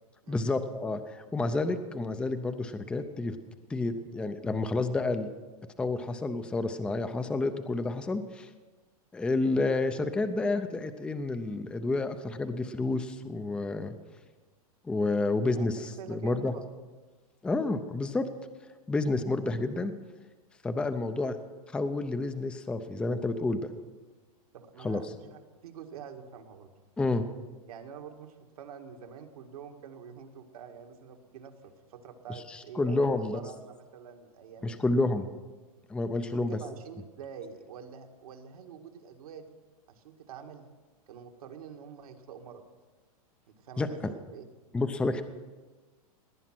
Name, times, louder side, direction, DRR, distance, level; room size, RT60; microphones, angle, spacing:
voice 1, 0.3-3.4 3.7-5.3 5.8-8.5 9.1-13.9 14.9-16.5 17.4-18.3 18.9-19.9 20.6-21.4 21.7-23.7 24.8-25.0 27.0-27.3 32.5-33.4 34.6-35.3 35.9-36.6 43.8-44.1 44.7-45.2, left 2 dB, 5° left, 9 dB, 0.5 m, -29 dB
voice 2, 15.5-16.7 24.5-26.7 27.7-35.0 36.2-39.6 39.9-40.7 41.1-42.6 43.5-44.5, right 7 dB, 75° right, 4 dB, 2.0 m, -46 dB
18.5 x 9.9 x 6.0 m, 1.3 s
supercardioid pair, 150°, 19 cm